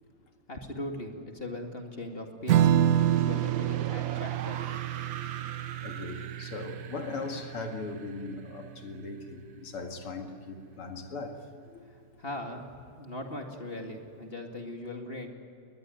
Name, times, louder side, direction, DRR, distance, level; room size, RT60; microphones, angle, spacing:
voice 1, 0.5-4.6 12.2-15.3, left 1 dB, 25° left, 3 dB, 2.4 m, -39 dB
Strum, 2.5-9.3, right 11 dB, 85° right, 0.7 m, -28 dB
sound 1, 2.6-9.6, right 8 dB, 65° right, 1.7 m, -42 dB
voice 2, 5.8-11.8, left 3 dB, 85° left, 5 dB, 3.0 m, -39 dB
21.5 x 20.0 x 9.4 m, 2.5 s
omnidirectional pair, 2.4 m